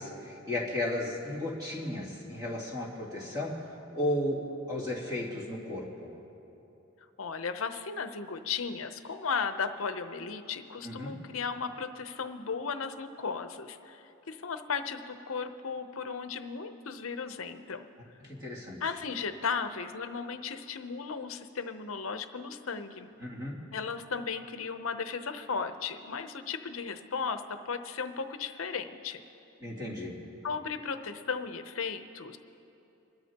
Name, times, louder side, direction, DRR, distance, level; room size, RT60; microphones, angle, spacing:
voice 1, 0.0-3.7 3.9-6.1 10.8-11.2 18.2-18.8 23.2-23.6 29.6-30.2, left 1 dB, 20° right, -5 dB, 2.7 m, -34 dB
voice 2, 7.2-17.9 18.8-23.1 23.7-29.2 30.4-32.4, left 5 dB, 65° left, 9 dB, 0.7 m, -35 dB
26.0 x 13.0 x 2.9 m, 3.0 s
head